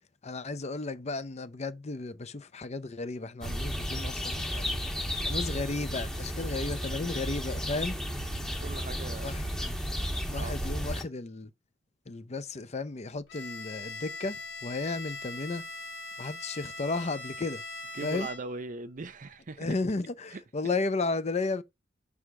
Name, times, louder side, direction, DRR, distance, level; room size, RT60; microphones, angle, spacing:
voice 1, 0.2-4.8 5.2-8.0 9.2-9.4 10.3-11.5 12.1-15.6 16.2-17.6 18.0-18.3 19.6-21.6, left 3 dB, 35° left, 0.6 m, -34 dB
sound 1, 3.4-11.0, equal, 5° left, 1.6 m, -33 dB
voice 2, 8.6-9.4 10.4-10.8 17.9-19.8 20.3-20.7, right 3 dB, 40° right, 0.6 m, -40 dB
Bowed string instrument, 13.3-18.7, left 2 dB, 80° left, 1.9 m, -41 dB
6.4 x 3.5 x 6.1 m
head